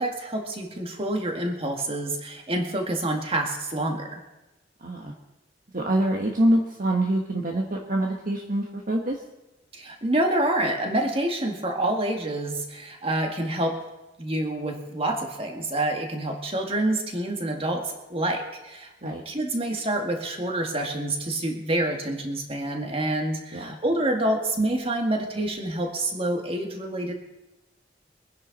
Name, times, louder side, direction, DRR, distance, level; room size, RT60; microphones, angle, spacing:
voice 1, 0.0-4.2 9.7-13.8 14.2-27.1, right 1 dB, 35° right, 2 dB, 2.0 m, -27 dB
voice 2, 4.8-5.1 5.7-9.2 19.0-19.2 23.5-23.8, right 1 dB, 50° right, 0 dB, 1.4 m, -25 dB
23.5 x 10.5 x 4.2 m, 1.0 s
head